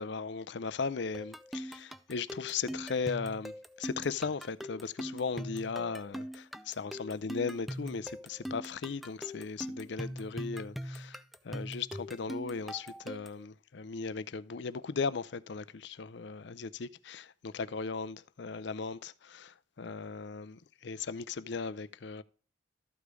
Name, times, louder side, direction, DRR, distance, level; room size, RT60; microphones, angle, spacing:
voice 1, 0.0-11.2 11.4-22.2, left 5 dB, 60° left, 0.5 m, -37 dB
sound 1, 1.1-13.5, equal, ahead, 0.4 m, -42 dB
13.5 x 5.0 x 4.8 m
head